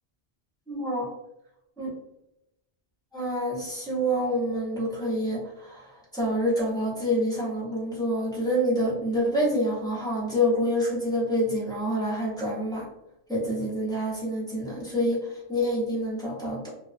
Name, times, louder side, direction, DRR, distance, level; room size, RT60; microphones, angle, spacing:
voice 1, 0.7-1.1 1.8-1.9 3.1-12.8 13.3-16.7, equal, 5° left, -7 dB, 0.8 m, -27 dB
2.3 x 2.2 x 2.4 m, 0.85 s
omnidirectional pair, 1.1 m